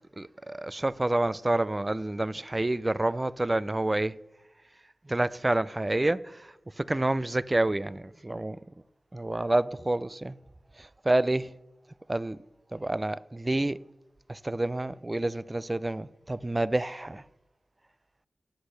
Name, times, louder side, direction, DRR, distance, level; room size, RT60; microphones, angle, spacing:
voice 1, 0.2-4.2 5.1-8.6 9.1-10.4 10.8-11.5 12.1-12.4 12.7-13.8 14.3-17.2, right 2 dB, 25° right, 0.4 m, -28 dB
19.5 x 8.1 x 3.3 m
wide cardioid pair, 65°, 0 cm